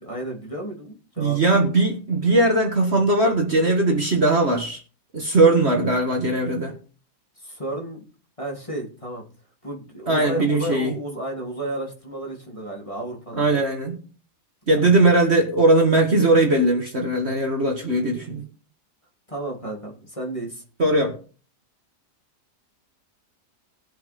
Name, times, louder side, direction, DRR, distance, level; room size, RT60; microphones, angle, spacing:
voice 1, 0.0-1.6 7.4-8.1 8.4-9.2 9.6-13.6 14.8-15.0 19.3-20.6, right 1 dB, 20° left, -1 dB, 3.2 m, -32 dB
voice 2, 1.2-4.8 5.1-6.8 10.1-10.9 13.4-14.0 14.7-18.4 20.8-21.2, right 2 dB, 40° right, 2 dB, 1.9 m, -19 dB
19.0 x 7.5 x 3.7 m, 0.39 s
omnidirectional pair, 1.8 m